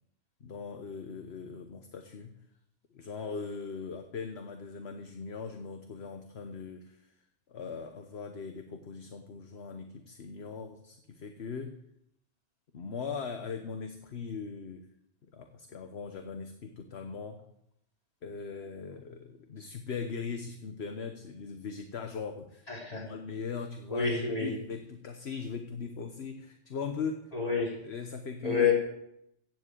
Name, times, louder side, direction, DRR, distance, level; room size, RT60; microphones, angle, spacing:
voice 1, 0.4-2.3 2.9-7.2 7.5-11.8 12.7-14.9 15.2-17.5 18.2-24.1 24.4-27.3 27.9-28.7, left 5 dB, 60° left, 6 dB, 1.3 m, -40 dB
voice 2, 22.7-23.1 23.9-24.5 27.3-27.8 28.4-28.7, left 5 dB, 30° left, -4 dB, 5.0 m, -28 dB
15.0 x 7.7 x 8.4 m, 0.77 s
omnidirectional pair, 1.2 m